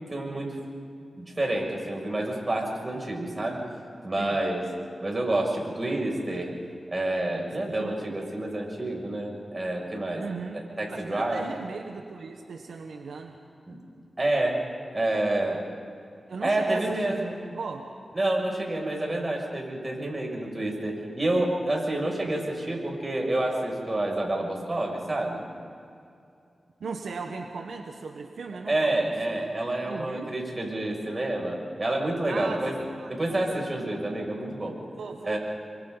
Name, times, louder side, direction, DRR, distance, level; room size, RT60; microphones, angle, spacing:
voice 1, 0.1-0.6 1.2-3.6 4.0-4.7 5.0-6.5 6.9-10.2 10.5-11.5 13.7-13.8 14.2-14.6 14.9-15.6 16.4-17.4 18.1-25.4 28.7-32.8 33.1-34.8 35.2-35.4, right 1 dB, 35° right, 0 dB, 6.9 m, -28 dB
voice 2, 7.8-8.2 10.2-13.4 16.3-17.1 17.4-17.9 26.8-29.1 29.9-30.3 32.3-33.4 34.9-35.4, right 4 dB, 85° right, 3 dB, 1.3 m, -38 dB
29.5 x 24.0 x 4.1 m, 2.5 s
cardioid pair, 50°, 0 cm